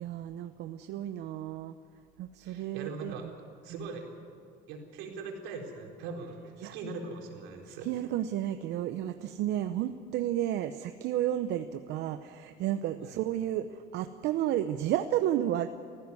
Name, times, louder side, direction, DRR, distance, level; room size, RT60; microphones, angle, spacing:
voice 1, 0.0-1.7 2.2-3.3 3.7-3.9 6.6-6.7 7.7-15.7, right 12 dB, 65° right, 9 dB, 0.8 m, -32 dB
voice 2, 2.4-3.3 3.6-4.0 4.7-7.9 13.0-13.2, right 4 dB, 85° right, 1 dB, 4.0 m, -41 dB
19.0 x 15.5 x 9.6 m, 2.2 s
cardioid pair, 135°, 19 cm